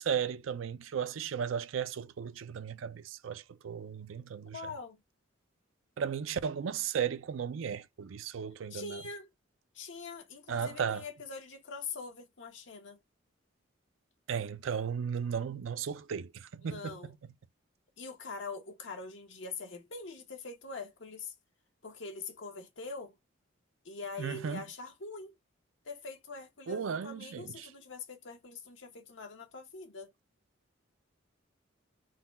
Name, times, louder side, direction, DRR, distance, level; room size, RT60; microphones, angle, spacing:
voice 1, 0.0-4.6 6.0-9.0 10.5-11.0 14.3-17.1 24.2-24.6 26.7-27.7, right 7 dB, 80° right, 0.4 m, -35 dB
voice 2, 4.5-5.0 8.7-9.3 9.7-13.0 16.6-17.1 18.0-21.3 21.8-23.1 23.8-25.3 25.8-30.1, left 4 dB, 65° left, 1.1 m, -43 dB
3.9 x 2.3 x 3.8 m
head